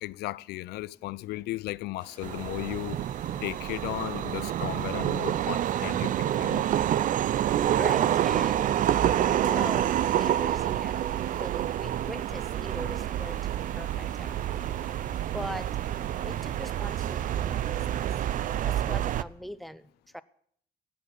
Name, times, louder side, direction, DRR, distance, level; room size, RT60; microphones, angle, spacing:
voice 1, 0.0-3.0 3.4-6.6, left 18 dB, 75° left, 0.4 m, -35 dB
Water, 2.0-18.8, right 2 dB, 25° right, 5.1 m, -53 dB
sound 1, 2.2-19.2, right 11 dB, 50° right, 0.5 m, -28 dB
voice 2, 7.8-8.6 9.3-13.4 13.8-14.3 15.3-15.7 16.2-17.8 18.6-19.8 20.1-20.2, equal, ahead, 0.6 m, -40 dB
16.5 x 7.1 x 8.2 m
cardioid pair, 110°, 17 cm